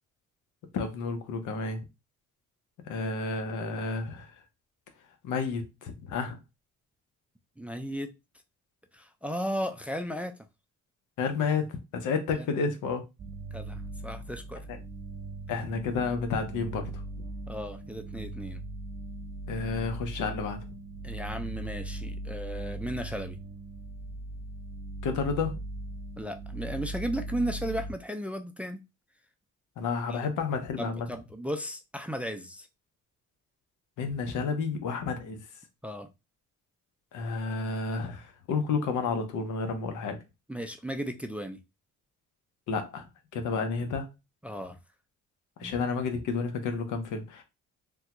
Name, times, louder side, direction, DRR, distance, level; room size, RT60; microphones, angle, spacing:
voice 1, 0.7-1.8 2.8-4.4 5.2-6.4 11.2-13.0 14.7-14.8 15.5-16.9 19.5-20.6 25.0-25.6 29.8-31.1 34.0-35.5 37.1-40.2 42.7-43.1 43.3-44.1 45.6-47.4, left 5 dB, 85° left, 0.8 m, -31 dB
voice 2, 7.6-8.1 8.9-10.3 12.3-12.5 13.5-14.6 17.5-18.6 21.0-23.4 26.2-28.8 30.1-30.3 30.8-32.7 35.8-36.1 40.5-41.6 44.4-44.8 45.6-45.7, equal, 5° right, 0.4 m, -35 dB
sound 1, 13.2-27.9, right 2 dB, 35° right, 0.8 m, -39 dB
3.4 x 2.3 x 2.9 m
cardioid pair, 90°, 30 cm